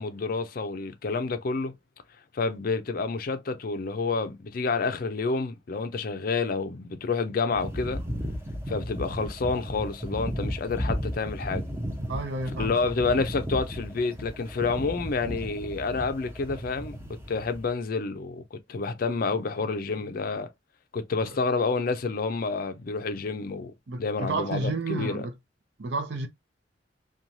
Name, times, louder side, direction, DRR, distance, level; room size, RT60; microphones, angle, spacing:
voice 1, 0.0-1.7 2.3-8.0 8.7-11.6 12.6-17.0 17.3-20.5 20.9-23.7 24.0-25.3, left 4 dB, 50° left, 0.4 m, -29 dB
sound 1, 7.5-17.7, equal, 15° right, 0.6 m, -35 dB
voice 2, 12.1-12.7 23.9-25.3 25.8-26.3, right 3 dB, 70° right, 0.6 m, -31 dB
3.0 x 2.2 x 2.6 m
head